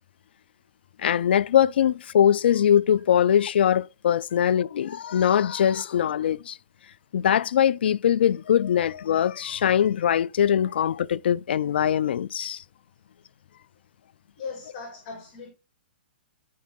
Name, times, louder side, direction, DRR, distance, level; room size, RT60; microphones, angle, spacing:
voice 1, 1.0-6.6 7.1-12.6, left 9 dB, 70° left, 0.3 m, -22 dB
voice 2, 14.4-15.5, left 5 dB, 45° left, 2.2 m, -38 dB
9.4 x 4.6 x 3.7 m
hypercardioid pair, 145°, 6 cm